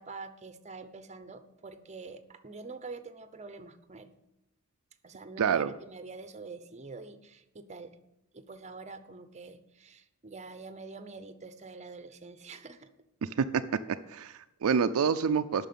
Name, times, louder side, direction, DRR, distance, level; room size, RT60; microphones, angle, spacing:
voice 1, 0.0-4.1 5.0-8.0 8.3-12.9, right 3 dB, 30° right, 10 dB, 0.7 m, -46 dB
voice 2, 5.4-5.7 13.2-13.6 14.1-15.7, right 6 dB, 70° right, 9 dB, 0.4 m, -27 dB
9.1 x 6.0 x 8.4 m, 0.86 s
head